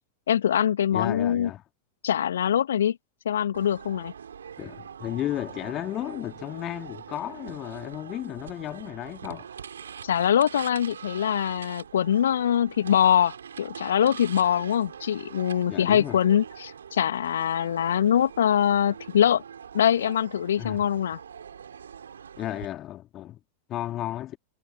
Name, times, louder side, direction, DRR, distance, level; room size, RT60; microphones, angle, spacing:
voice 1, 0.3-1.5 2.0-3.0 3.3-4.1 10.0-19.4 19.7-21.2, left 9 dB, 65° left, 2.0 m, -23 dB
voice 2, 0.9-1.6 4.6-9.5 15.7-16.2 20.6-20.8 22.4-23.4 23.7-24.4, left 13 dB, 30° left, 3.4 m, -33 dB
sound 1, 3.5-22.7, right 7 dB, 70° right, 4.5 m, -43 dB
figure-of-eight pair, 90°, 0 cm